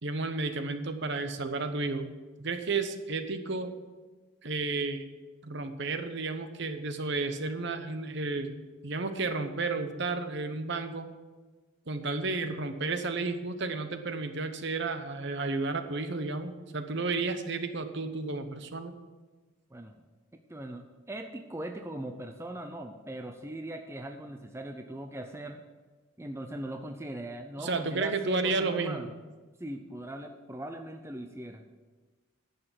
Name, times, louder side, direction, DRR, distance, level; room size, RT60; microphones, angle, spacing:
voice 1, 0.0-2.1 2.4-3.7 4.4-5.1 5.4-11.1 11.9-18.9 27.6-29.1, right 3 dB, 55° right, 8 dB, 0.9 m, -32 dB
voice 2, 20.5-25.6 26.2-29.1 29.6-31.6, right 1 dB, 10° right, 5 dB, 0.5 m, -40 dB
11.0 x 6.7 x 7.6 m, 1.3 s
head